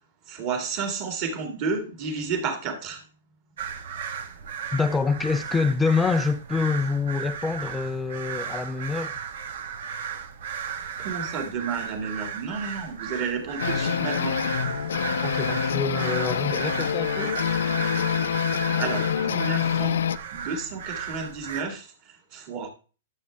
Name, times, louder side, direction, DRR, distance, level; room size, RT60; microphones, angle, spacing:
voice 1, 0.3-3.0 11.0-14.4 18.7-20.0 20.3-21.9 22.3-22.7, right 5 dB, 25° right, 2.1 m, -31 dB
sound 1, 3.6-21.6, right 7 dB, 55° right, 1.4 m, -35 dB
voice 2, 4.7-9.2 15.2-17.4, left 4 dB, 5° left, 0.4 m, -26 dB
sound 2, 13.6-20.2, left 8 dB, 90° left, 0.7 m, -26 dB
11.5 x 7.4 x 3.4 m
hypercardioid pair, 175°, 0 cm